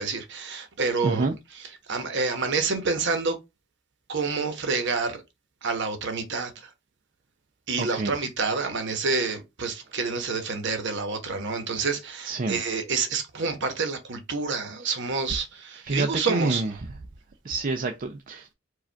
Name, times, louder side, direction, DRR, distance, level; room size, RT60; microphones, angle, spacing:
voice 1, 0.0-1.3 1.9-3.4 4.1-5.2 5.6-6.5 7.7-16.6, right 4 dB, 55° right, 1.0 m, -28 dB
voice 2, 1.0-1.4 7.8-8.2 12.2-12.6 14.8-14.9 15.8-16.7 17.4-18.5, right 3 dB, 40° right, 0.5 m, -28 dB
4.9 x 2.4 x 4.4 m
head